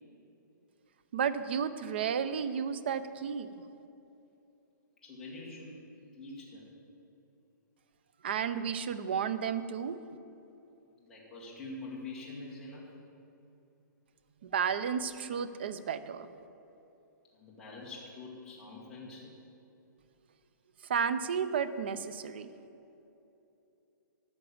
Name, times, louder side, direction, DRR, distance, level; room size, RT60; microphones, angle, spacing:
voice 1, 1.1-3.5 8.2-10.0 14.4-16.3 20.9-22.5, right 7 dB, 30° right, 13 dB, 0.5 m, -32 dB
voice 2, 5.0-5.8 6.2-6.6 11.0-12.9 17.3-19.3, left 2 dB, 5° left, -7 dB, 1.6 m, -45 dB
13.0 x 5.9 x 8.6 m, 2.9 s
hypercardioid pair, 180°, 11 cm